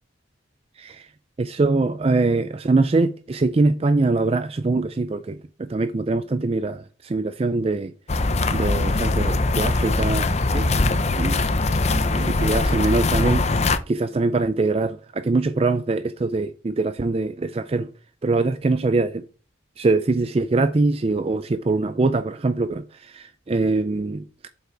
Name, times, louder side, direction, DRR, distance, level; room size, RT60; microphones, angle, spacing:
voice 1, 0.8-1.1 1.4-7.9 8.5-11.4 11.9-17.9 18.2-19.2 19.8-24.5, right 3 dB, 30° right, 0.4 m, -23 dB
sound 1, 8.1-13.8, left 2 dB, 35° left, 0.6 m, -21 dB
7.7 x 5.8 x 4.5 m
head